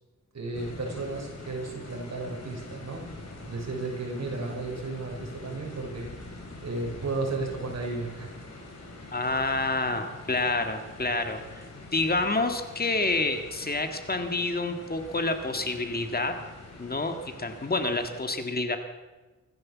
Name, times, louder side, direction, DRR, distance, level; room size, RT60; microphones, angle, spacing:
voice 1, 0.3-3.0 3.4-8.4, right 3 dB, 60° right, 0 dB, 5.8 m, -34 dB
sound 1, 0.5-18.2, left 2 dB, 60° left, 5.6 m, -45 dB
voice 2, 9.1-11.7 11.9-16.4 16.8-18.8, left 2 dB, 30° left, 6 dB, 1.8 m, -28 dB
24.5 x 14.5 x 7.3 m, 1.2 s
wide cardioid pair, 130°, 30 cm